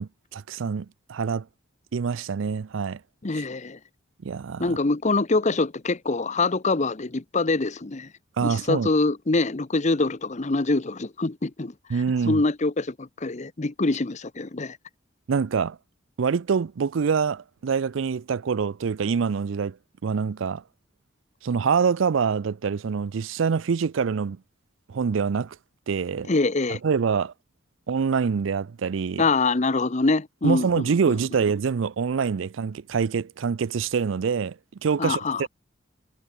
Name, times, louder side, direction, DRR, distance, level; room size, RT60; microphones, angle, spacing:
voice 1, 0.0-1.5 1.9-3.0 4.2-4.8 8.4-8.9 11.9-12.4 15.3-15.8 16.2-19.8 20.0-20.6 21.4-24.4 24.9-25.6 25.9-26.3 26.7-27.3 27.9-29.2 30.4-35.5, right 6 dB, 70° right, 0.4 m, -25 dB
voice 2, 3.2-3.8 4.6-8.1 8.4-11.7 12.3-14.8 26.3-26.8 29.2-30.9 35.0-35.5, left 3 dB, 35° left, 0.8 m, -24 dB
head